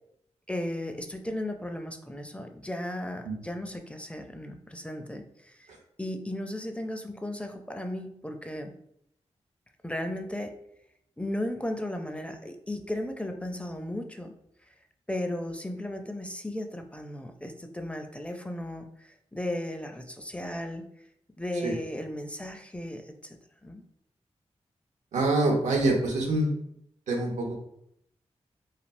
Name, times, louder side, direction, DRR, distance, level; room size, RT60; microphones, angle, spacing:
voice 1, 0.5-8.7 9.8-10.5 11.2-14.3 15.1-20.9 21.4-23.8, left 1 dB, 10° left, 5 dB, 0.4 m, -35 dB
voice 2, 25.1-26.5 27.1-27.6, right 2 dB, 85° right, 1 dB, 0.6 m, -25 dB
3.3 x 2.3 x 2.6 m, 0.74 s
cardioid pair, 45°, 12 cm